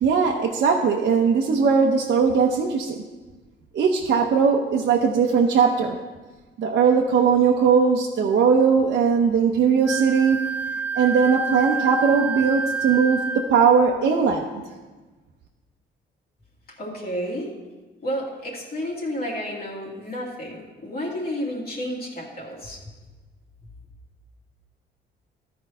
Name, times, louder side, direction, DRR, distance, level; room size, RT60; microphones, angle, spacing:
voice 1, 0.0-3.0 3.7-6.0 6.6-10.4 11.0-14.6, right 6 dB, 60° right, 0 dB, 0.8 m, -19 dB
Wind instrument woodwind instrument, 9.8-13.6, right 5 dB, 5° right, 0.5 m, -28 dB
voice 2, 16.8-17.5 18.0-22.8, equal, 50° left, -4 dB, 2.4 m, -31 dB
12.5 x 4.7 x 5.5 m, 1.3 s
cardioid pair, 90°, 20 cm